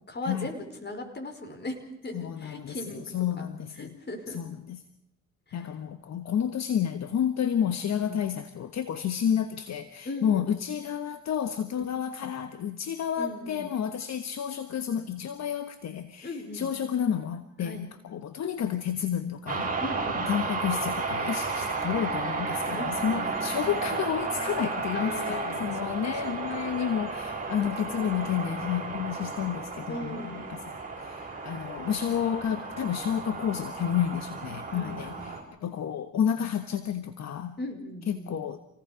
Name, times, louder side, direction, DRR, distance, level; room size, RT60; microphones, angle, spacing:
voice 1, 0.1-3.4 3.8-4.6 5.5-5.7 8.1-8.2 10.0-10.5 11.7-11.9 13.2-13.7 16.2-16.7 17.6-17.9 19.8-20.4 22.7-23.4 24.9-26.8 27.6-28.5 29.9-30.5 34.7-35.4 37.6-38.5, left 1 dB, 35° left, 5 dB, 4.8 m, -39 dB
voice 2, 2.1-3.9 4.3-4.8 5.5-19.7 20.3-30.6 31.0-37.6 38.1-38.6, left 9 dB, 60° left, 9 dB, 1.3 m, -30 dB
sound 1, 19.5-35.4, right 4 dB, 25° right, 6.1 m, -33 dB
28.0 x 18.5 x 5.0 m, 0.81 s
cardioid pair, 90°, 30 cm